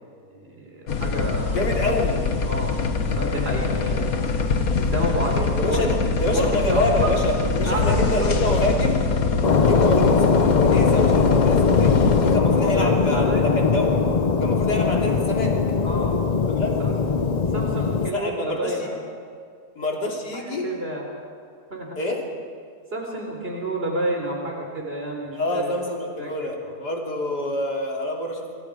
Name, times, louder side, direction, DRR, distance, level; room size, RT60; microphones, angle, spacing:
voice 1, 0.3-2.8 3.1-4.1 4.8-5.9 6.3-7.2 7.7-8.6 12.6-13.6 15.8-16.2 16.8-17.0 17.5-19.0 20.3-21.1 21.7-22.0 22.9-25.7 26.2-26.7, right 1 dB, 35° right, 0 dB, 4.3 m, -30 dB
sound 1, 0.9-12.4, left 4 dB, 60° left, 1.7 m, -23 dB
voice 2, 1.5-2.2 5.6-9.0 9.6-14.1 14.4-15.6 16.6-16.7 18.1-18.9 19.8-20.7 22.0-22.2 25.4-28.5, left 1 dB, 85° left, -1 dB, 3.8 m, -27 dB
sound 2, 9.4-18.1, left 5 dB, 40° left, 0.6 m, -20 dB
27.5 x 24.5 x 5.0 m, 2.1 s
omnidirectional pair, 1.7 m